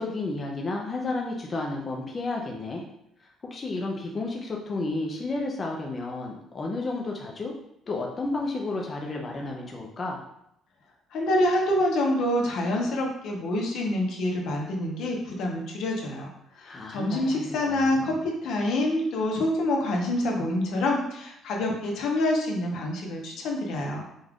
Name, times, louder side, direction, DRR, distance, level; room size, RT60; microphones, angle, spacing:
voice 1, 0.0-2.8 3.5-7.5 7.9-10.2 16.6-18.2, left 2 dB, 25° left, 0 dB, 0.5 m, -32 dB
voice 2, 11.1-24.0, left 1 dB, 65° left, 0 dB, 1.0 m, -26 dB
5.3 x 2.4 x 3.6 m, 0.77 s
cardioid pair, 150°, 0 cm